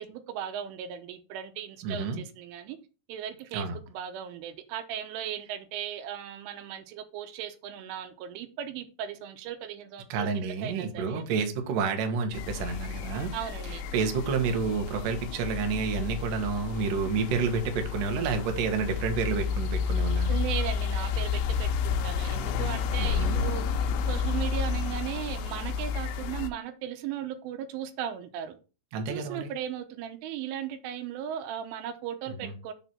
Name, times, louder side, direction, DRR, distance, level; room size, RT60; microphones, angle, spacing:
voice 1, 0.0-2.8 3.1-11.2 13.3-13.9 20.3-28.6 29.1-32.7, right 10 dB, 85° right, 3.3 m, -37 dB
voice 2, 1.8-2.2 3.5-3.7 10.1-13.3 13.9-20.4 23.0-23.5 28.9-29.5 32.4-32.5, right 5 dB, 65° right, 2.2 m, -29 dB
sound 1, 12.3-26.5, left 6 dB, 85° left, 2.5 m, -31 dB
6.9 x 4.2 x 5.9 m
omnidirectional pair, 5.6 m